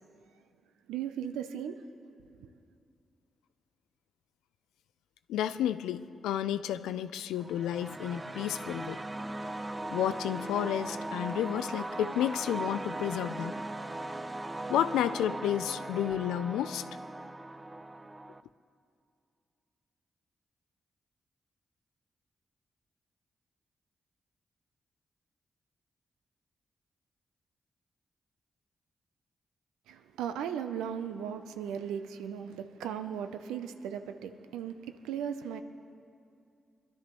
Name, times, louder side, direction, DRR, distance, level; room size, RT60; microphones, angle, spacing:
voice 1, 0.9-1.9 2.4-2.5 29.9-35.6, right 8 dB, 90° right, 9 dB, 0.5 m, -37 dB
voice 2, 5.3-9.0 9.9-13.6 14.7-16.8, left 10 dB, 90° left, 12 dB, 0.3 m, -31 dB
sound 1, 7.4-18.4, right 2 dB, 30° right, 0.5 m, -39 dB
22.0 x 12.0 x 3.0 m, 2.5 s
supercardioid pair, 40°, 0 cm